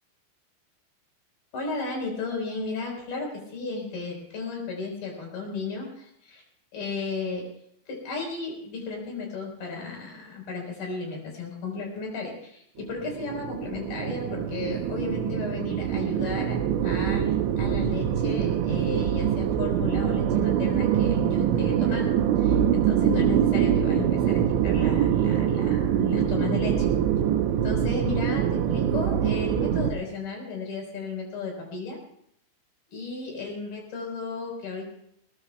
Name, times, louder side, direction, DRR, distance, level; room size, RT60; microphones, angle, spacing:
voice 1, 1.5-6.4 6.7-7.5 7.9-26.9 27.6-32.0 32.9-35.0, left 4 dB, 55° left, 1 dB, 6.0 m, -34 dB
sound 1, 12.8-29.9, right 9 dB, 90° right, 3.1 m, -24 dB
21.0 x 20.5 x 2.3 m, 0.70 s
omnidirectional pair, 5.3 m